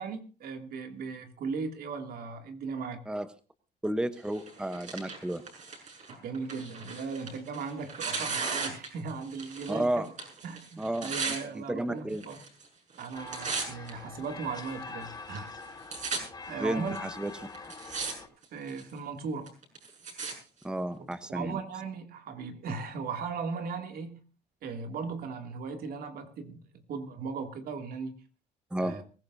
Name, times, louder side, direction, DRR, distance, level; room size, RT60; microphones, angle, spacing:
voice 1, 0.0-3.1 6.1-10.1 10.4-12.4 13.0-15.5 16.5-17.1 18.5-19.6 21.3-24.2 24.6-26.6 26.9-28.1 28.8-29.0, right 5 dB, 65° right, 5 dB, 2.5 m, -37 dB
voice 2, 3.8-5.4 9.7-10.1 10.8-12.2 16.6-17.3 20.6-21.6 28.7-29.0, right 1 dB, 5° right, 10 dB, 0.9 m, -32 dB
Tearing, 4.3-9.8 10.0-11.4 12.1-12.7 12.9-13.9 14.5-14.6 15.4-15.5 15.6-16.2 17.0-17.1 17.5-18.1 18.4-18.9 19.5-20.3 21.1-21.2, right 4 dB, 45° right, 6.6 m, -36 dB
sound 1, 13.1-18.3, left 4 dB, 25° left, 4.6 m, -44 dB
22.5 x 15.0 x 2.7 m, 0.36 s
cardioid pair, 110°, 17 cm